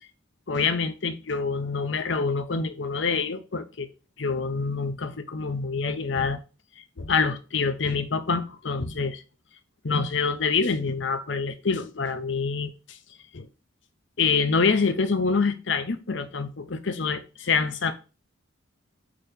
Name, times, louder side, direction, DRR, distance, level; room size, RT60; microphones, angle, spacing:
voice 1, 0.5-3.9 4.2-6.4 7.0-9.2 9.8-13.0 13.3-13.5 14.2-17.9, left 4 dB, 60° left, 0.8 m, -26 dB
8.7 x 3.0 x 5.1 m
head